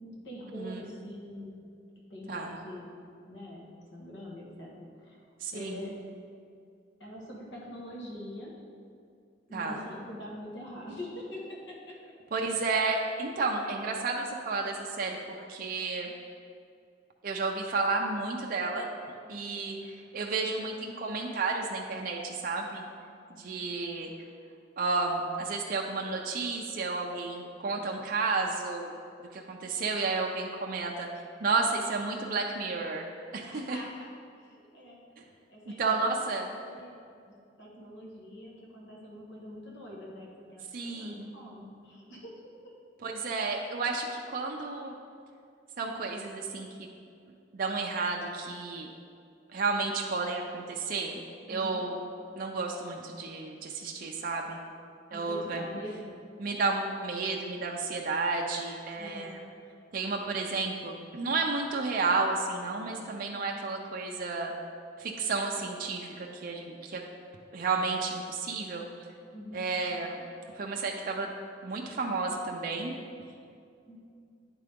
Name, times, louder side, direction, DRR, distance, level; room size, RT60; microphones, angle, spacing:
voice 1, 0.0-1.6 1.9-2.9 3.2-5.2 5.5-5.9 7.0-8.5 9.5-12.0 19.3-19.6 23.3-23.7 33.5-34.1 34.4-35.0 35.5-36.1 36.4-42.7 51.5-51.8 55.1-56.2 59.0-59.4 69.3-69.6 73.8-74.0, left 1 dB, 65° left, -4 dB, 1.4 m, -44 dB
voice 2, 5.4-5.9 9.5-9.8 12.3-16.1 17.2-18.9 19.3-22.9 23.3-24.1 24.8-28.9 29.3-31.1 31.4-33.1 33.3-33.8 35.2-35.3 35.7-36.5 40.7-41.3 43.0-45.0 45.8-46.9 47.5-48.9 49.5-51.2 51.5-51.9 52.4-54.6 55.1-55.6 56.4-59.4 59.9-64.5 65.0-67.0 67.5-68.8 69.5-70.3 70.5-71.3 71.6-72.9, right 3 dB, 50° right, 0 dB, 0.5 m, -32 dB
10.0 x 3.7 x 3.5 m, 2.4 s
head